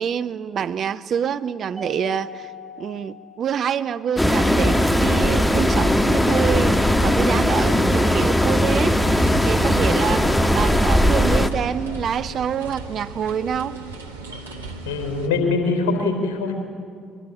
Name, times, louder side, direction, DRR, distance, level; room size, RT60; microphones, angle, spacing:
voice 1, 0.0-2.5 2.8-13.8, right 8 dB, 50° right, 13 dB, 0.7 m, -26 dB
Mallet percussion, 1.8-4.2, left 2 dB, 5° right, 5.2 m, -40 dB
sound 1, 4.2-11.5, equal, 10° left, 1.6 m, -18 dB
sound 2, 8.9-15.3, right 3 dB, 80° right, 1.4 m, -37 dB
voice 2, 14.9-16.5, left 3 dB, 65° left, 5 dB, 4.3 m, -22 dB
23.0 x 21.5 x 9.1 m, 2.1 s
figure-of-eight pair, 45°, 0 cm